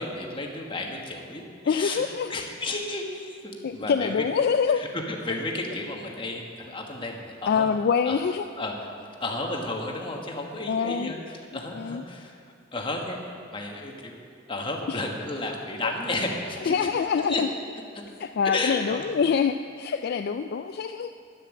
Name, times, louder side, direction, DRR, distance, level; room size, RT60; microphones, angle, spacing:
voice 1, 0.0-2.0 2.3-4.2 4.7-7.7 8.0-8.2 8.6-12.4 12.7-14.2 14.5-16.9 17.2-17.4 18.4-19.1, left 2 dB, 25° left, 1 dB, 1.5 m, -32 dB
voice 2, 1.7-2.4 3.6-4.8 7.5-8.4 10.7-11.1 11.7-12.0 14.9-15.0 15.8-15.9 16.7-17.5 18.2-21.1, left 6 dB, 55° left, 8 dB, 0.3 m, -25 dB
10.0 x 9.9 x 7.2 m, 2.3 s
head